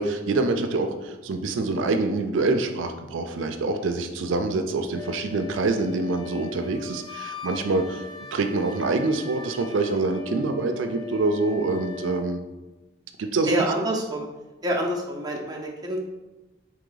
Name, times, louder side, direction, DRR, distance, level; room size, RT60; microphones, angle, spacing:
voice 1, 0.0-8.0 8.3-12.4 13.2-13.7, right 3 dB, 85° right, 6 dB, 0.4 m, -25 dB
Wind instrument woodwind instrument, 4.9-12.4, left 5 dB, 25° left, 0.4 m, -41 dB
voice 2, 13.5-14.3 14.6-16.0, equal, 20° right, -1 dB, 0.6 m, -27 dB
3.8 x 3.1 x 3.9 m, 1.1 s
head